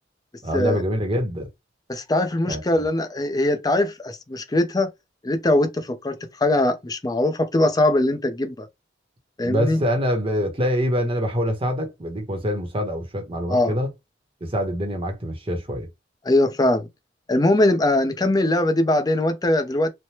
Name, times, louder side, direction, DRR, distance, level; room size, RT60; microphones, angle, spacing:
voice 1, 0.4-1.5 2.5-2.6 9.4-13.9 14.4-15.9, equal, 30° right, 0.8 m, -25 dB
voice 2, 1.9-4.9 5.2-8.7 9.4-9.8 13.5-13.8 16.2-16.9 17.3-19.9, left 1 dB, 20° left, 0.5 m, -21 dB
3.2 x 2.1 x 2.8 m
head